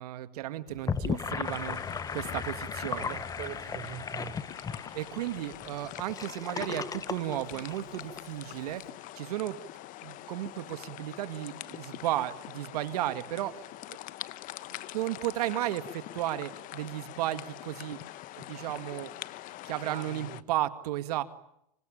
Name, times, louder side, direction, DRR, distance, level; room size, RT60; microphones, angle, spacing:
voice 1, 0.0-3.2 4.9-8.8 9.2-9.6 10.0-13.6 13.9-14.0 14.9-18.0 18.4-19.1 19.6-21.2, right 14 dB, 75° right, 11 dB, 2.1 m, -34 dB
Gurgling / Sink (filling or washing), 0.7-8.2, left 6 dB, 20° left, 1.2 m, -36 dB
sound 1, 1.4-20.4, left 16 dB, 45° left, 1.0 m, -45 dB
voice 2, 2.9-4.3 19.8-20.4, right 11 dB, 40° right, 11 dB, 4.2 m, -42 dB
26.0 x 25.0 x 8.8 m, 0.78 s
hypercardioid pair, 115°, 20 cm